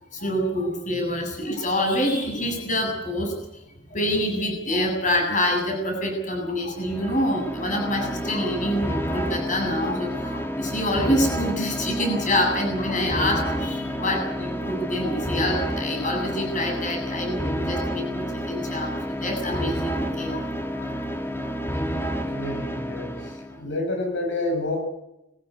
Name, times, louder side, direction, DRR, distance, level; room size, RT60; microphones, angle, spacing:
voice 1, 0.1-3.3 3.9-21.0 21.4-21.5, left 1 dB, 40° left, 3 dB, 7.9 m, -26 dB
sound 1, 6.8-23.6, equal, 15° left, 2.2 m, -30 dB
voice 2, 22.1-24.8, left 2 dB, 70° left, 1 dB, 6.7 m, -29 dB
23.5 x 14.5 x 9.5 m, 0.89 s
head